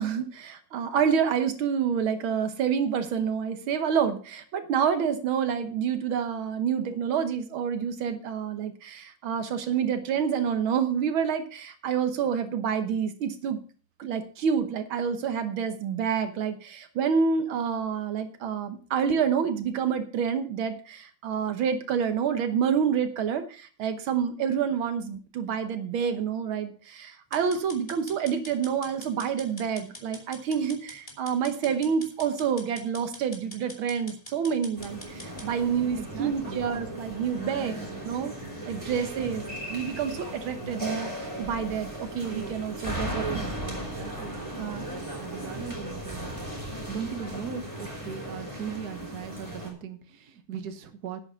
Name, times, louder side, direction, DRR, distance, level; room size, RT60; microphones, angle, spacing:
voice 1, 0.0-13.6 14.0-37.8 38.0-38.3 38.7-43.4 44.6-44.9, right 7 dB, 80° right, 9 dB, 1.9 m, -28 dB
sound 1, 27.3-35.5, left 1 dB, 15° left, 2.7 m, -45 dB
sound 2, 34.8-49.7, equal, 15° right, 4.9 m, -37 dB
voice 2, 36.0-36.7 37.5-38.0 42.9-46.3 46.9-51.2, right 7 dB, 55° right, 8 dB, 1.7 m, -39 dB
10.5 x 8.6 x 5.6 m, 0.39 s
omnidirectional pair, 2.2 m